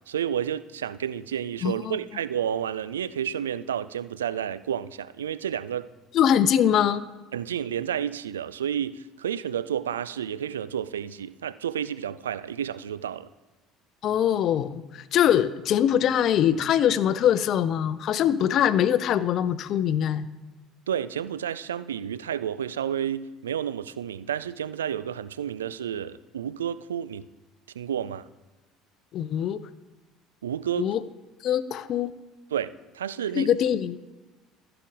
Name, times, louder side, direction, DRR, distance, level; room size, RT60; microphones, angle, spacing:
voice 1, 0.1-5.9 7.3-13.3 20.9-27.3 27.7-28.2 30.4-31.0 32.5-33.5, right 9 dB, 80° right, 0.3 m, -31 dB
voice 2, 1.6-2.0 6.1-7.0 14.0-20.3 29.1-29.6 30.8-31.0 31.4-32.1 33.3-34.0, left 10 dB, 50° left, 0.6 m, -23 dB
15.0 x 6.9 x 3.7 m
figure-of-eight pair, 60°, 0 cm